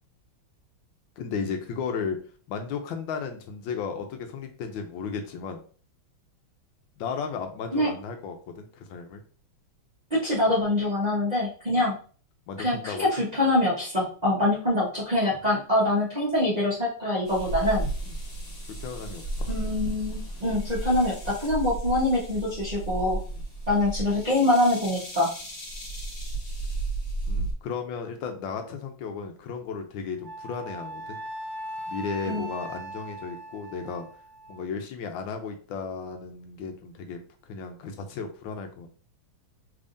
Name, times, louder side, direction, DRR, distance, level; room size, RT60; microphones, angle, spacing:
voice 1, 1.2-2.2 2.5-5.6 7.0-9.2 11.7-11.8 12.5-13.1 15.3-15.4 18.1-18.2 18.8-19.5 23.3-23.4 27.3-31.2 31.9-34.1 34.5-37.2 37.5-38.9, left 5 dB, 75° left, 5 dB, 1.3 m, -34 dB
voice 2, 10.2-12.0 12.6-17.9 19.5-23.2 23.7-25.3 32.3-32.4, left 1 dB, 25° right, -8 dB, 0.9 m, -24 dB
sound 1, 17.3-27.5, right 2 dB, 40° left, 1.4 m, -33 dB
Wind instrument woodwind instrument, 30.2-34.6, right 1 dB, 80° right, 1.3 m, -39 dB
3.5 x 3.4 x 2.6 m, 0.41 s
omnidirectional pair, 2.2 m